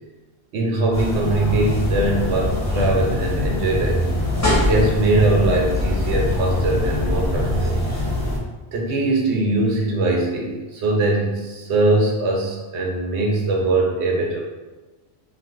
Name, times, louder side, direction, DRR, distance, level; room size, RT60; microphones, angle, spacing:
voice 1, 0.5-4.0 4.6-7.7 8.7-14.4, right 2 dB, 85° right, -1 dB, 1.0 m, -21 dB
sound 1, 0.9-8.4, left 2 dB, 20° left, 0.7 m, -23 dB
2.5 x 2.4 x 3.5 m, 1.2 s
omnidirectional pair, 1.1 m